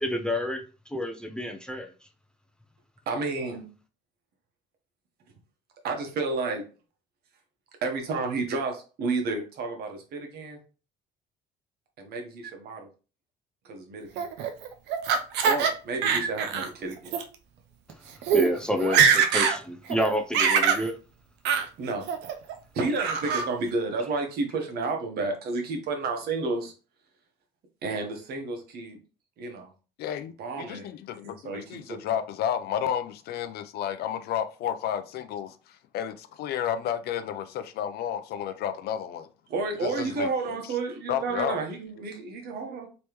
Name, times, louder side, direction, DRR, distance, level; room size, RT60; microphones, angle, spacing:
voice 1, 0.0-0.6 0.9-1.9 18.3-21.0, equal, 5° left, 0.5 m, -29 dB
voice 2, 3.1-3.6 5.8-6.6 7.8-10.6 12.0-12.9 13.6-14.3 15.4-17.1 21.8-22.0 22.7-26.7 27.8-29.0 29.4-29.7 30.4-30.9 31.2-32.0 39.5-42.9, right 3 dB, 70° right, 1.1 m, -31 dB
Laughter, 14.2-15.7 16.0-16.7 17.1-17.2 17.9-18.0 18.2-18.5 18.8-19.6 19.9-20.8 21.4-21.7 22.1-22.5 23.0-23.5, right 7 dB, 90° right, 0.6 m, -23 dB
voice 3, 30.0-39.3 39.8-40.6 41.1-41.5, left 9 dB, 70° left, 0.5 m, -32 dB
3.4 x 3.0 x 3.0 m
cardioid pair, 110°, 17 cm